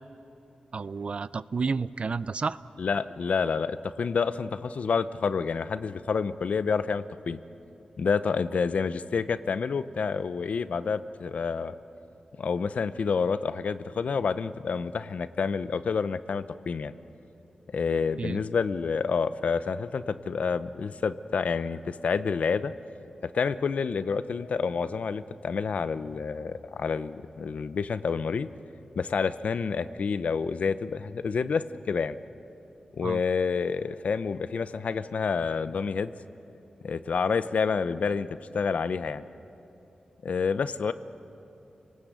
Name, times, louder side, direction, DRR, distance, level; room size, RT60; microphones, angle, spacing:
voice 1, 0.7-2.6 18.2-18.4 33.0-33.2, right 4 dB, 55° right, 17 dB, 0.5 m, -31 dB
voice 2, 2.8-7.4 8.0-11.7 12.4-16.9 17.7-22.7 23.3-28.5 29.0-32.2 33.0-36.1 36.8-38.3 38.5-39.2 40.2-40.9, left 5 dB, 75° left, 13 dB, 0.8 m, -28 dB
30.0 x 19.0 x 8.2 m, 3.0 s
cardioid pair, 70°, 2 cm